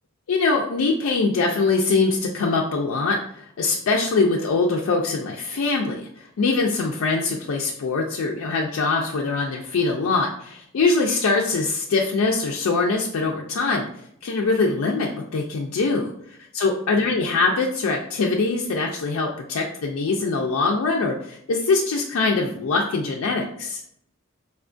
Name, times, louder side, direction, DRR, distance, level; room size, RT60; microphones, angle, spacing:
voice 1, 0.3-13.9 14.2-16.1 16.5-23.8, left 3 dB, 80° left, 0 dB, 0.4 m, -23 dB
4.2 x 2.3 x 2.5 m, 0.70 s
head